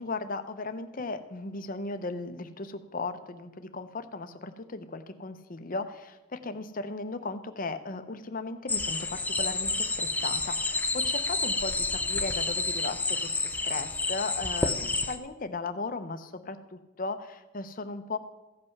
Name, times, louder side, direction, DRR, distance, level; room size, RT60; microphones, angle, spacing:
voice 1, 0.0-18.2, left 3 dB, 40° left, 9 dB, 0.7 m, -37 dB
sound 1, 8.7-15.2, left 3 dB, 10° left, 0.5 m, -29 dB
15.5 x 5.5 x 5.9 m, 1.1 s
head